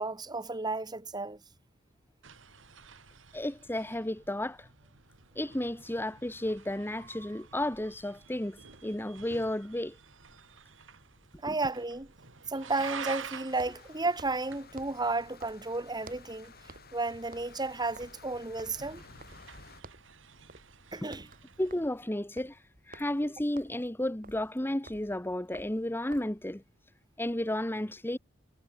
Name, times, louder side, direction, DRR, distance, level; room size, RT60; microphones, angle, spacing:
voice 1, 0.0-1.4 11.4-12.1 12.5-16.5 16.9-19.0 20.9-21.3, right 3 dB, 20° right, 1.8 m, -33 dB
sound 1, 2.2-21.9, right 6 dB, 75° right, 3.0 m, -49 dB
voice 2, 3.3-4.7 5.3-10.0 11.5-11.6 21.6-22.6 22.9-26.6 27.2-28.2, left 1 dB, 10° left, 1.1 m, -33 dB
sound 2, 13.5-19.8, left 4 dB, 55° left, 7.9 m, -54 dB
sound 3, 13.5-16.4 16.7-17.0 17.3-19.6 19.8-20.1 20.5-20.8 21.0-26.4, right 2 dB, 45° right, 6.7 m, -53 dB
head